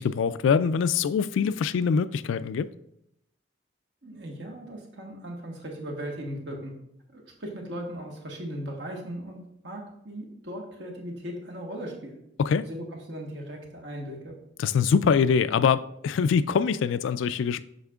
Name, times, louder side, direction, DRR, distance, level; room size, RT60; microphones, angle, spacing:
voice 1, 0.0-2.7 12.4-12.6 14.6-17.6, left 6 dB, 80° left, 0.3 m, -24 dB
voice 2, 4.0-6.7 7.1-12.2 12.6-14.3, equal, 70° right, 1.4 m, -38 dB
7.9 x 5.7 x 2.4 m
head